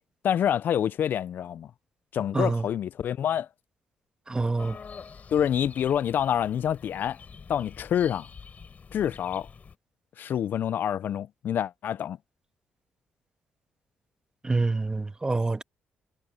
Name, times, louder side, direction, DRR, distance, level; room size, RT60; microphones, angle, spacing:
voice 1, 0.2-1.7 2.1-3.5 5.3-7.2 7.5-8.3 8.9-9.5 10.2-12.2, left 9 dB, 65° left, 0.5 m, -27 dB
voice 2, 2.3-2.7 4.3-4.8 14.4-15.6, right 3 dB, 20° right, 1.6 m, -26 dB
sound 1, 4.6-9.8, left 5 dB, 45° left, 6.2 m, -46 dB
supercardioid pair, 65°, 4 cm